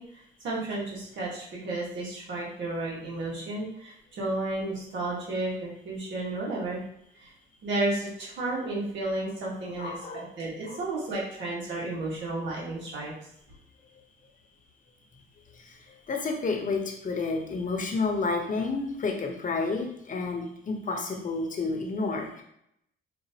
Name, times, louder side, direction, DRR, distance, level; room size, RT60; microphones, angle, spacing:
voice 1, 0.0-6.8 7.1-7.3 7.6-13.1, right 2 dB, 70° right, -5 dB, 1.4 m, -32 dB
voice 2, 9.8-10.2 10.7-10.8 16.1-22.4, left 3 dB, 40° left, 2 dB, 0.8 m, -30 dB
5.0 x 2.6 x 2.8 m, 0.76 s
cardioid pair, 90°, 20 cm